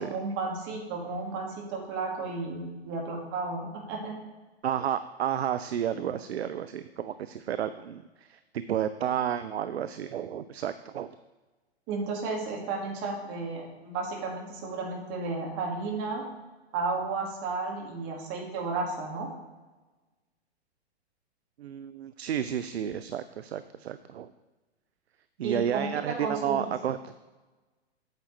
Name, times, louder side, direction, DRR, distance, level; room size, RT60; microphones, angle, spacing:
voice 1, 0.0-4.1 11.9-16.3 16.7-19.3 25.4-26.7, right 3 dB, 35° right, 0 dB, 2.1 m, -33 dB
voice 2, 4.6-8.4 8.7-11.2 21.6-24.3 25.4-27.1, right 9 dB, 70° right, 12 dB, 0.5 m, -31 dB
8.8 x 7.2 x 3.3 m, 1.2 s
figure-of-eight pair, 110°, 33 cm